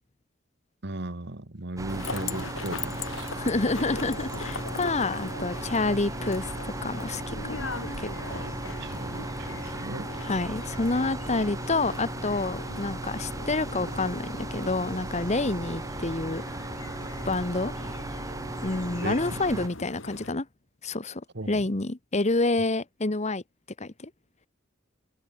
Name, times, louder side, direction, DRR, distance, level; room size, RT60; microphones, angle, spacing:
voice 1, 0.8-3.3 8.3-10.1 17.2-17.4 19.0-19.4 21.3-21.6, right 2 dB, 60° right, 1.8 m, -37 dB
sound 1, 1.8-19.7, right 2 dB, 15° right, 0.8 m, -36 dB
sound 2, 1.9-20.3, left 3 dB, 75° left, 5.0 m, -39 dB
voice 2, 3.4-7.7 8.0-8.4 10.2-16.4 17.2-17.7 18.6-20.5 20.8-21.2 21.5-23.4 23.8-24.1, left 2 dB, 35° left, 1.2 m, -28 dB
head